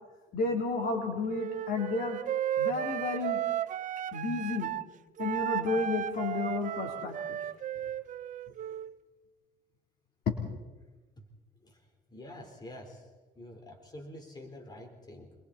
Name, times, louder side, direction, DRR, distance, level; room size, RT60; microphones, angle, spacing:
voice 1, 0.3-2.2 2.6-3.4 4.1-4.7 5.2-7.4 10.3-10.4, left 4 dB, 60° left, 1 dB, 3.8 m, -31 dB
Wind instrument woodwind instrument, 1.3-4.9 5.2-8.9, right 11 dB, 50° right, 0.8 m, -34 dB
voice 2, 12.1-13.1 13.4-15.3, left 1 dB, 25° left, 3 dB, 4.6 m, -47 dB
26.5 x 23.0 x 4.4 m, 1.2 s
cardioid pair, 110°, 17 cm